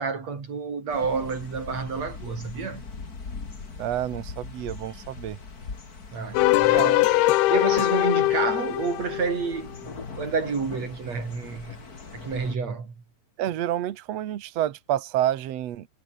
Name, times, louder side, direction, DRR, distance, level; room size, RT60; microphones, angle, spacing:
voice 1, 0.0-2.8 6.1-11.8 12.1-13.0, right 5 dB, 40° right, 5.2 m, -30 dB
sound 1, 0.9-12.6, left 4 dB, 25° left, 2.6 m, -41 dB
voice 2, 3.8-5.4 13.4-15.9, right 12 dB, 65° right, 1.6 m, -28 dB
sound 2, 6.3-9.6, left 17 dB, 85° left, 2.8 m, -21 dB
omnidirectional pair, 4.6 m